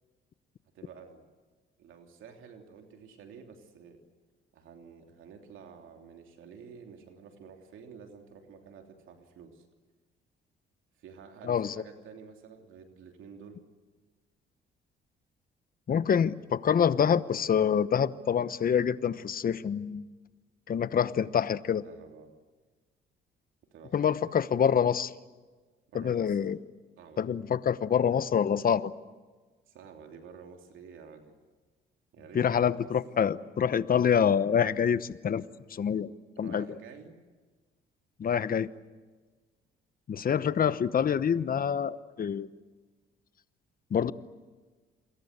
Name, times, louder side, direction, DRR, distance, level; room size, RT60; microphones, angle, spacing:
voice 1, 0.7-1.3 1.8-4.0 4.5-9.7 11.0-13.6 21.0-21.3 21.8-22.3 23.7-24.7 25.9-26.4 27.0-27.3 29.7-31.3 32.1-32.9 36.4-37.2, right 6 dB, 80° right, 3 dB, 3.1 m, -50 dB
voice 2, 15.9-20.0 20.7-21.8 23.9-25.1 25.9-26.6 27.2-28.9 32.3-35.4 35.7-36.1 36.4-36.6 38.2-38.7 40.1-42.5 43.9-44.1, left 8 dB, 45° left, 15 dB, 1.0 m, -26 dB
28.5 x 22.0 x 8.2 m, 1.4 s
cardioid pair, 90°, 20 cm